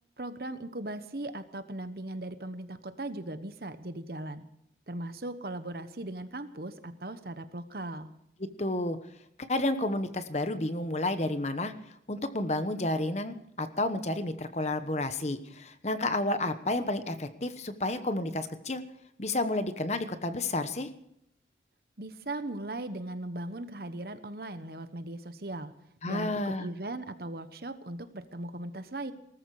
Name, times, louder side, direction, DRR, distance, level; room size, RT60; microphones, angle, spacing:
voice 1, 0.2-4.4 4.9-8.1 22.0-25.7 26.1-29.1, right 1 dB, 55° right, 11 dB, 1.1 m, -38 dB
voice 2, 8.6-9.0 9.4-11.7 12.1-18.8 19.2-20.9 26.0-26.7, left 2 dB, 40° left, 10 dB, 1.1 m, -31 dB
19.0 x 14.0 x 4.9 m, 0.77 s
head